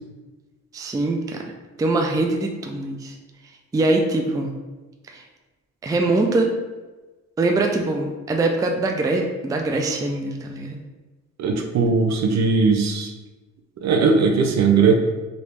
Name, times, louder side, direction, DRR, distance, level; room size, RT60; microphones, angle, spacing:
voice 1, 0.7-1.4 1.8-3.2 3.7-4.5 5.1-5.2 5.8-6.5 7.4-10.8, right 2 dB, 10° right, 2 dB, 0.3 m, -23 dB
voice 2, 11.4-13.1 13.8-14.9, right 4 dB, 60° right, 3 dB, 0.6 m, -18 dB
3.0 x 2.6 x 3.3 m, 1.2 s
cardioid pair, 90°, 30 cm